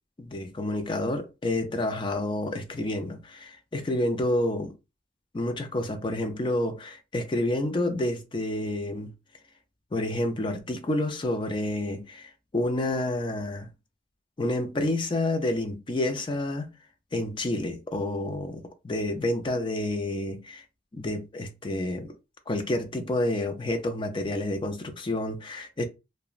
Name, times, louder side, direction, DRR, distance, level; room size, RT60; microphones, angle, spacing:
voice 1, 0.2-4.7 5.3-9.1 9.9-13.7 14.4-16.7 17.1-20.6 20.9-22.1 22.5-25.8, left 1 dB, 30° left, 0.4 m, -29 dB
2.8 x 2.1 x 2.4 m
head